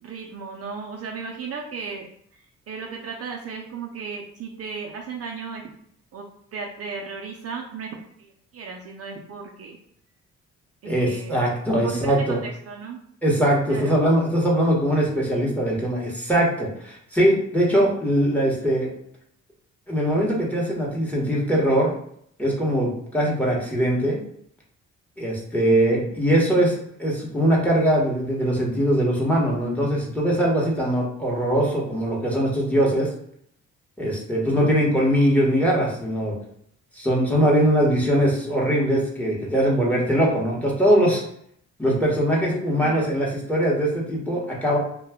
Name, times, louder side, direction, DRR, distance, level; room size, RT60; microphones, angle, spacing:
voice 1, 0.0-2.1 2.3-5.7 6.1-6.3 6.5-7.9 8.2-9.8 10.8-11.6 11.8-13.0 13.7-14.0 25.7-26.2 34.5-34.7 42.7-43.1, right 5 dB, 55° right, 0 dB, 0.5 m, -35 dB
voice 2, 10.8-12.4 13.2-18.9 19.9-21.9 22.4-24.2 25.2-33.1 34.0-36.3 37.0-41.2 41.8-44.8, equal, 5° left, -3 dB, 1.0 m, -21 dB
2.2 x 2.2 x 3.5 m, 0.68 s
cardioid pair, 90°, 30 cm